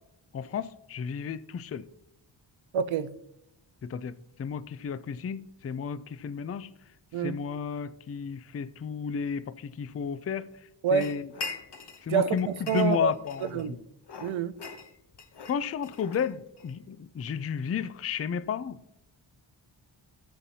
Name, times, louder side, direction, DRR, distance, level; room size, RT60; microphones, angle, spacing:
voice 1, 0.3-1.8 3.8-6.7 7.2-10.5 10.9-11.3 12.0-13.8 15.5-18.8, left 6 dB, 30° left, 0.4 m, -32 dB
voice 2, 2.7-3.1 7.1-7.4 10.8-11.1 12.1-12.4 12.7-13.1 13.5-13.8 14.2-14.6, right 7 dB, 75° right, 0.6 m, -27 dB
sound 1, 11.0-12.1 12.4-13.7 14.1-16.7, left 4 dB, 55° left, 0.9 m, -42 dB
15.0 x 7.4 x 2.8 m
wide cardioid pair, 100°, 48 cm